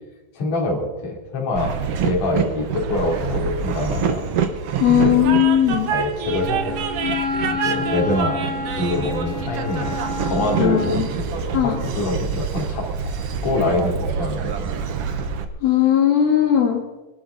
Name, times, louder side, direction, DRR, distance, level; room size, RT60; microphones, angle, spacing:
voice 1, 0.3-1.7 2.0-4.2 4.9-5.3 5.9-6.8 7.5-8.4 8.7-12.9 13.4-14.5, left 2 dB, 50° left, -2 dB, 4.3 m, -25 dB
Train, 1.6-15.4, right 6 dB, 70° right, 1.4 m, -26 dB
voice 2, 4.8-5.9 10.6-11.1 11.5-11.8 15.6-16.8, left 9 dB, 80° left, -2 dB, 4.5 m, -17 dB
Wind instrument woodwind instrument, 6.2-11.1, left 3 dB, 50° right, 8.2 m, -29 dB
24.0 x 11.5 x 4.0 m, 1.2 s
omnidirectional pair, 4.2 m